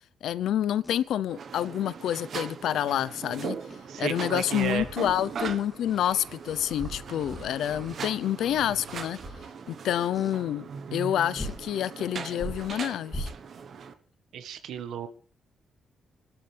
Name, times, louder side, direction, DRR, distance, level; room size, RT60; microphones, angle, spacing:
voice 1, 0.2-3.6 4.0-9.2 9.7-13.3, left 11 dB, 85° left, 0.8 m, -28 dB
sound 1, 0.8-1.0 3.7-4.4 4.8-5.1 5.9-6.2 7.3-7.4 8.4-8.7 10.1-10.4 11.0-11.1 11.4-11.7 12.3-13.7, equal, 10° left, 2.7 m, -39 dB
sound 2, 1.3-13.9, right 6 dB, 50° right, 1.3 m, -40 dB
voice 2, 3.9-4.8 14.3-15.1, right 8 dB, 85° right, 1.7 m, -33 dB
Zombie breathing, 4.6-9.5, right 2 dB, 30° right, 4.9 m, -46 dB
25.0 x 12.5 x 3.5 m
cardioid pair, 160°, 0 cm